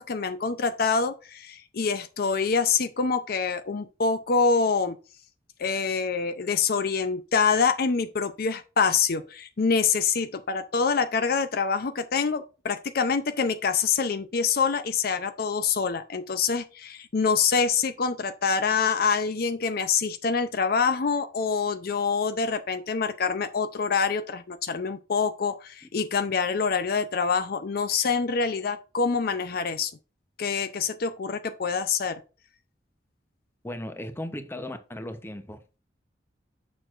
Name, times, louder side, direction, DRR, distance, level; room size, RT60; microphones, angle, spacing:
voice 1, 0.0-4.9 5.6-29.9 30.4-32.2, left 5 dB, 55° left, 0.5 m, -26 dB
voice 2, 33.6-35.8, left 1 dB, 15° left, 0.7 m, -37 dB
6.9 x 6.1 x 2.5 m
head